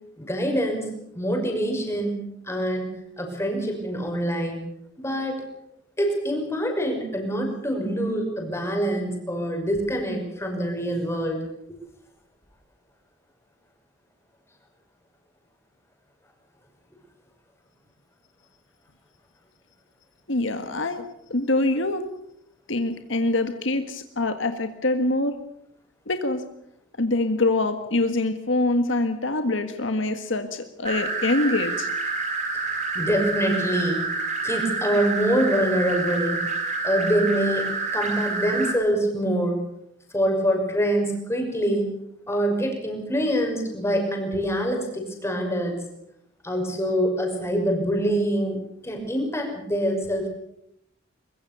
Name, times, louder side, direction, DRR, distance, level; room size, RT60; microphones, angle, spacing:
voice 1, 0.2-0.9 1.1-2.2 2.5-4.6 5.0-5.4 6.0-11.4 32.9-34.0 34.4-36.4 36.8-37.7 37.9-39.6 40.1-41.9 42.3-45.8 46.4-50.3, equal, 15° left, 2 dB, 6.0 m, -25 dB
voice 2, 20.3-21.0 21.3-22.1 22.7-25.4 26.1-26.4 27.0-31.9, left 2 dB, 70° left, 8 dB, 1.7 m, -24 dB
sound 1, 30.8-38.7, right 3 dB, 35° right, 4.9 m, -28 dB
23.0 x 22.5 x 6.9 m, 0.75 s
head